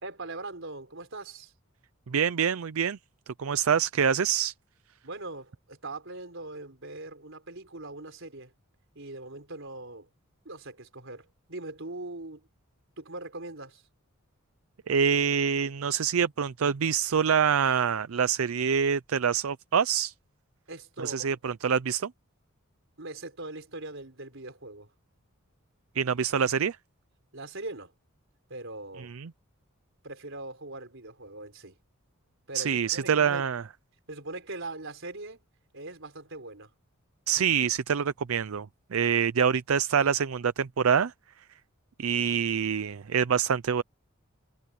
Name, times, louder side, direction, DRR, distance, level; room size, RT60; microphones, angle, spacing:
voice 1, 0.0-1.5 5.0-8.5 8.9-10.1 10.4-12.4 13.0-13.8 20.7-21.3 23.0-24.9 27.3-27.9 28.5-29.1 30.0-31.8 32.5-33.4 34.1-35.4 35.7-36.7, right 2 dB, 60° right, 4.8 m, -41 dB
voice 2, 2.1-3.0 3.4-4.5 14.9-20.1 21.0-22.1 26.0-26.8 29.0-29.3 32.5-33.6 37.3-41.1 42.0-43.8, right 7 dB, 80° right, 0.5 m, -26 dB
head